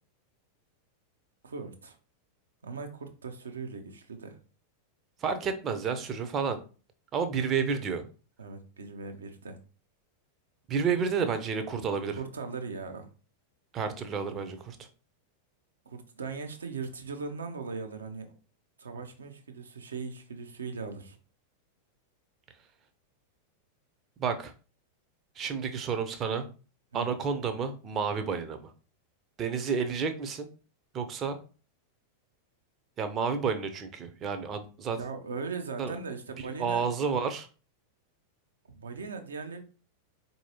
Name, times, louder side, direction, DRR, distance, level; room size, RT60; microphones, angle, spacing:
voice 1, 1.4-2.0 2.6-4.4 8.4-9.6 12.2-13.1 15.9-18.3 18.8-21.2 26.9-27.1 35.0-36.9 38.7-39.6, right 4 dB, 70° right, 7 dB, 0.7 m, -39 dB
voice 2, 5.2-6.6 7.1-8.1 10.7-12.2 13.7-14.8 24.2-24.5 25.4-26.4 26.9-28.7 29.4-30.5 30.9-31.4 33.0-35.0 35.8-35.9 36.6-37.5, right 6 dB, 30° right, 8 dB, 0.6 m, -30 dB
4.5 x 2.7 x 2.9 m, 0.35 s
figure-of-eight pair, 90°, 0 cm